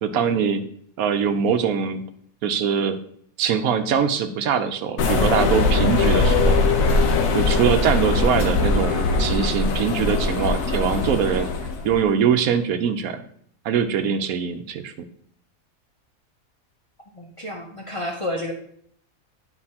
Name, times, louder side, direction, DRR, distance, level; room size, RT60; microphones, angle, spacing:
voice 1, 0.0-0.6 1.0-2.0 2.4-3.0 3.4-6.6 7.3-11.5 11.8-13.2 13.6-14.9, right 7 dB, 80° right, 9 dB, 1.1 m, -22 dB
sound 1, 5.0-11.9, left 3 dB, 70° left, 1.2 m, -21 dB
voice 2, 17.1-18.5, left 1 dB, 35° left, 0 dB, 0.6 m, -30 dB
9.6 x 4.9 x 2.8 m, 0.64 s
omnidirectional pair, 1.5 m